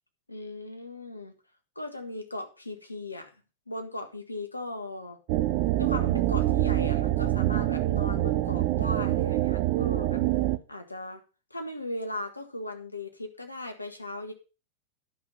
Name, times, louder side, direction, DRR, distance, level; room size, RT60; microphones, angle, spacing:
voice 1, 0.3-1.3 1.8-3.3 3.7-5.2 5.8-10.2 10.7-11.2 11.5-14.3, left 2 dB, 85° left, 5 dB, 1.6 m, -38 dB
sound 1, 5.3-10.6, right 15 dB, 45° right, 0.7 m, -25 dB
11.0 x 5.9 x 5.7 m, 0.32 s
figure-of-eight pair, 90°, 0 cm